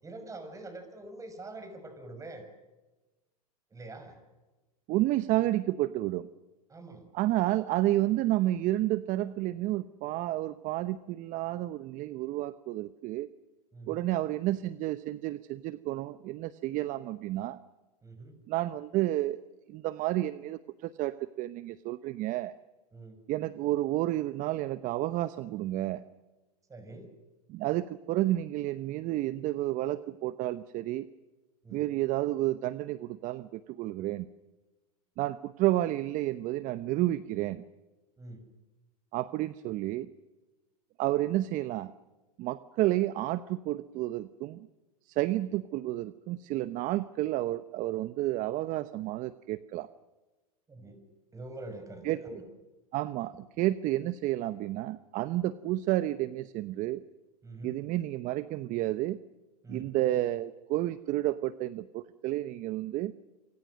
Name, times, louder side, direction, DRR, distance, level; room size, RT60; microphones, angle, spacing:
voice 1, 0.0-2.4 3.7-4.2 6.7-7.1 13.7-14.1 18.0-18.4 22.9-23.2 26.7-27.1 31.6-31.9 38.2-38.4 50.7-51.0 51.3-52.4 57.4-57.8 59.6-59.9, right 2 dB, 15° right, 8 dB, 6.2 m, -45 dB
voice 2, 4.9-6.3 7.1-13.3 13.9-17.6 18.5-19.4 19.7-22.6 23.3-26.0 27.5-31.1 31.7-34.3 35.2-37.6 39.1-40.1 41.0-41.9 42.4-44.7 45.1-49.9 52.0-52.2 52.9-57.0 57.6-59.2 59.7-63.1, right 15 dB, 40° right, 15 dB, 0.9 m, -31 dB
27.5 x 26.0 x 6.5 m, 1.2 s
hypercardioid pair, 110°, 20 cm